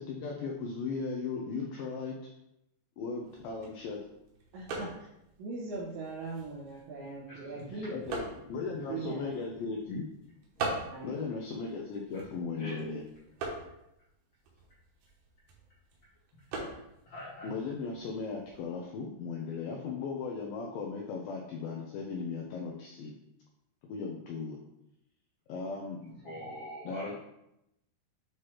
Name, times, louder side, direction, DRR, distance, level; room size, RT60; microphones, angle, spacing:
voice 1, 0.0-2.2 3.0-4.0 7.7-10.0 11.0-13.0 17.4-23.2 23.8-24.6 25.5-26.0 26.9-27.1, left 4 dB, 85° left, 0 dB, 2.0 m, -37 dB
sound 1, 3.2-18.7, right 3 dB, 65° right, 2.9 m, -44 dB
voice 2, 4.5-5.1 5.4-8.1 8.9-9.3 10.9-11.2, right 3 dB, 85° right, -9 dB, 3.7 m, -40 dB
voice 3, 7.3-9.2 10.5-10.7 12.1-12.2 12.6-12.9 17.0-17.5 26.0-27.1, equal, 65° left, -8 dB, 1.2 m, -45 dB
8.4 x 3.0 x 4.7 m, 0.84 s
omnidirectional pair, 5.0 m